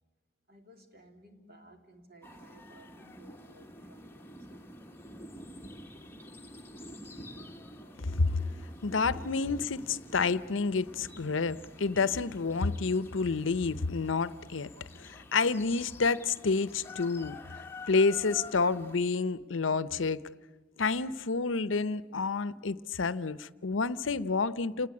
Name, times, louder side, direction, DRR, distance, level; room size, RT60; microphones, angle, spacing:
voice 1, 0.5-4.7 8.1-8.2 9.4-9.6, equal, 55° right, 3.3 m, -55 dB
sound 1, 2.2-19.0, left 1 dB, 10° left, 1.2 m, -48 dB
voice 2, 8.8-9.8 10.1-14.7 15.0-17.4 17.9-20.2 20.8-24.9, left 4 dB, 90° left, 0.7 m, -29 dB
29.5 x 19.0 x 9.8 m
head